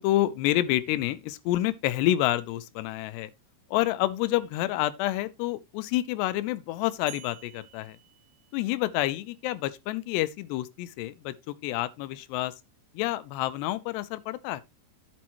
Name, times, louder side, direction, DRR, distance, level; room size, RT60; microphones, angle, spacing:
voice 1, 0.0-3.3 3.7-8.0 8.5-12.5 12.9-14.6, left 15 dB, 80° left, 2.6 m, -28 dB
sound 1, 7.1-9.1, right 16 dB, 80° right, 2.9 m, -50 dB
10.5 x 7.2 x 3.0 m
omnidirectional pair, 5.1 m